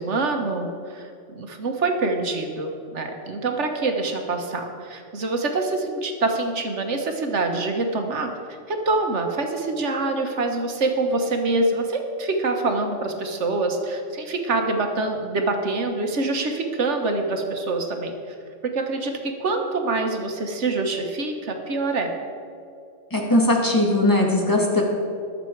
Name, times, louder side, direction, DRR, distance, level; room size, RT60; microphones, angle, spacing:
voice 1, 0.0-18.3 18.6-22.1, right 3 dB, 70° right, 4 dB, 1.6 m, -25 dB
voice 2, 23.1-24.8, left 1 dB, 15° left, -1 dB, 1.9 m, -19 dB
20.5 x 6.8 x 4.6 m, 2.5 s
omnidirectional pair, 1.3 m